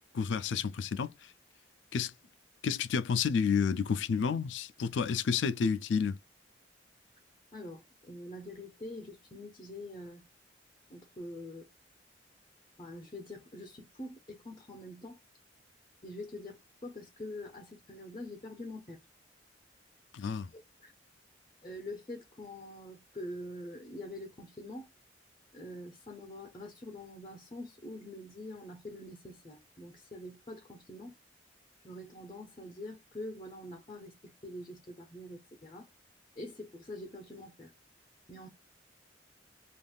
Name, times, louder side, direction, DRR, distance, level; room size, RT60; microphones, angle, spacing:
voice 1, 0.1-1.1 1.9-2.1 2.6-6.2 20.1-20.5, left 6 dB, 70° left, 0.4 m, -30 dB
voice 2, 7.5-10.2 10.9-11.7 12.8-15.2 16.0-19.0 20.5-20.9 21.6-24.9 25.5-31.1 31.8-35.9 36.4-37.7 38.3-38.5, left 1 dB, 25° left, 0.6 m, -45 dB
3.5 x 2.5 x 2.3 m
head